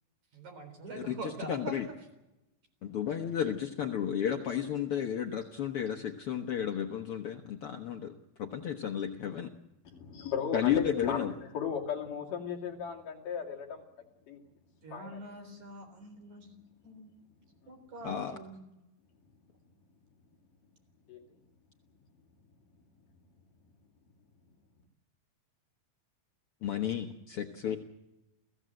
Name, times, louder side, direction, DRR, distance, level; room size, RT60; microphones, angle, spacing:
voice 1, 0.3-1.8 14.8-16.5 16.8-17.1 17.7-18.6, right 2 dB, 50° right, 5 dB, 5.1 m, -44 dB
voice 2, 0.9-1.9 2.8-8.1 8.4-9.5 10.5-11.3 18.0-18.4 26.6-27.8, left 9 dB, 75° left, 4 dB, 1.2 m, -33 dB
voice 3, 9.9-11.3 11.5-13.8 14.3-14.4 14.9-15.2 17.6-17.7 21.1-21.3, left 7 dB, 60° left, 0 dB, 3.9 m, -36 dB
29.5 x 17.0 x 7.7 m, 0.98 s
omnidirectional pair, 4.3 m